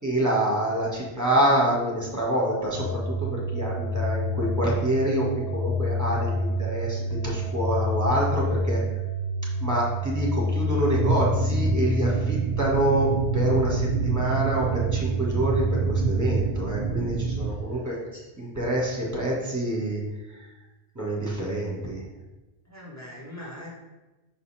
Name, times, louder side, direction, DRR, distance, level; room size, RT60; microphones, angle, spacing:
voice 1, 0.0-8.8 9.6-18.0 18.4-20.0 20.9-22.0, right 1 dB, 15° right, -3 dB, 1.6 m, -26 dB
sound 1, 2.8-16.4, equal, 85° left, 1.2 m, -28 dB
sound 2, 10.9-17.5, right 5 dB, 60° right, 0.7 m, -28 dB
voice 2, 17.7-18.5 22.6-23.7, left 1 dB, 15° left, -5 dB, 1.6 m, -43 dB
6.1 x 4.2 x 4.2 m, 1.1 s
omnidirectional pair, 1.1 m